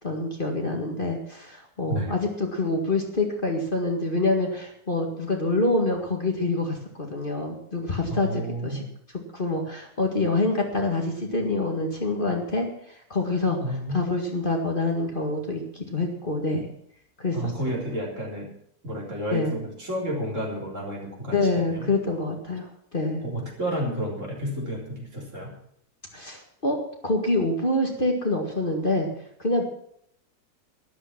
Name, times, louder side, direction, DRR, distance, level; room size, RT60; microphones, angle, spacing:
voice 1, 0.0-8.8 9.3-12.7 13.1-13.6 13.9-16.6 17.2-17.4 19.3-19.5 21.3-22.7 22.9-23.2 26.1-26.8 27.0-29.1 29.4-29.6, left 2 dB, 35° left, 2 dB, 2.1 m, -26 dB
voice 2, 8.1-8.9 13.2-14.3 17.3-18.5 18.8-21.9 23.2-25.5, equal, 50° right, -1 dB, 4.2 m, -31 dB
12.5 x 11.5 x 5.9 m, 0.68 s
omnidirectional pair, 1.6 m